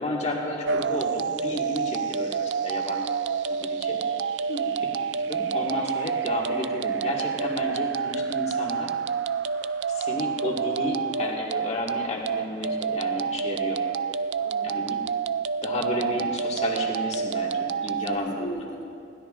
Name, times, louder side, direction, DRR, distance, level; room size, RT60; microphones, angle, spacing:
voice 1, 0.0-3.1 3.5-4.0 5.2-8.9 9.9-13.8 14.6-15.0 15.6-18.6, left 1 dB, 35° left, -2 dB, 1.9 m, -31 dB
sound 1, 0.6-18.2, right 6 dB, 80° right, 0.4 m, -28 dB
voice 2, 4.5-4.8 14.4-14.9 18.1-18.8, right 1 dB, 80° left, -3 dB, 2.5 m, -37 dB
20.5 x 16.0 x 2.5 m, 2.5 s
head